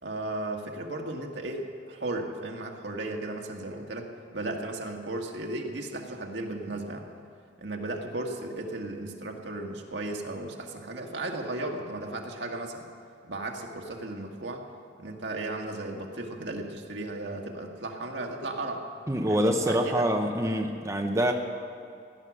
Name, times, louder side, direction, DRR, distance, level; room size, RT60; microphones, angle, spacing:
voice 1, 0.0-7.0 7.6-12.9 13.2-14.6 15.0-18.8 19.3-20.0, right 2 dB, 70° right, 1 dB, 1.7 m, -35 dB
voice 2, 19.1-21.3, equal, 15° right, 3 dB, 0.8 m, -25 dB
17.0 x 11.0 x 6.3 m, 2.4 s
head